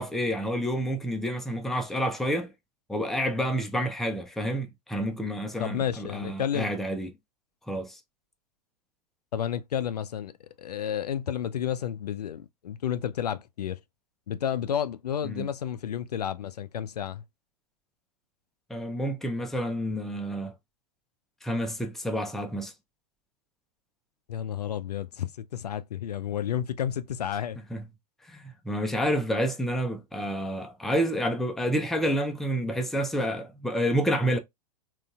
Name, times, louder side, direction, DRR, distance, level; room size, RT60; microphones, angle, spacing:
voice 1, 0.0-2.5 2.9-7.1 7.6-8.0 15.2-15.5 18.7-20.5 21.4-22.7 27.7-27.8 28.3-34.4, equal, ahead, 0.5 m, -29 dB
voice 2, 5.6-6.7 9.3-10.3 10.6-13.8 14.3-17.2 24.3-27.6, left 9 dB, 75° left, 0.4 m, -31 dB
3.8 x 2.5 x 2.3 m
figure-of-eight pair, 100°, 20 cm